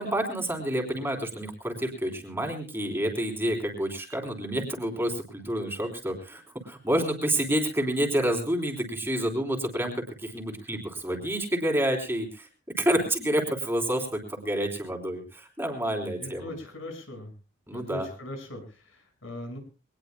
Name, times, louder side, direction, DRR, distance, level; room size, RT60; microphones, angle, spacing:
voice 1, 0.0-12.5 12.8-16.5 17.7-18.1, right 1 dB, 10° right, 2 dB, 3.5 m, -29 dB
voice 2, 16.2-17.3 17.7-19.6, left 1 dB, 80° left, 4 dB, 5.7 m, -39 dB
23.5 x 19.5 x 2.2 m, 0.30 s
head